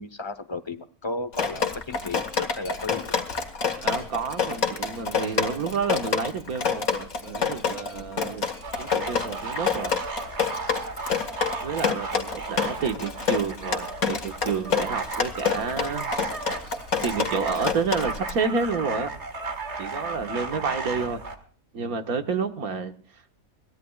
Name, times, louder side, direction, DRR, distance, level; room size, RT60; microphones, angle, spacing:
voice 1, 0.0-3.1, left 2 dB, 20° left, 13 dB, 0.9 m, -34 dB
Drip, 1.3-18.3, left 6 dB, 75° left, 2.2 m, -27 dB
voice 2, 3.8-8.5 8.8-10.0 11.6-16.0 17.0-19.1 19.8-21.2 21.7-22.9, right 5 dB, 85° right, 7 dB, 1.9 m, -29 dB
sound 1, 8.6-21.4, right 3 dB, 50° right, 2.0 m, -35 dB
22.5 x 17.5 x 2.4 m, 0.42 s
omnidirectional pair, 1.5 m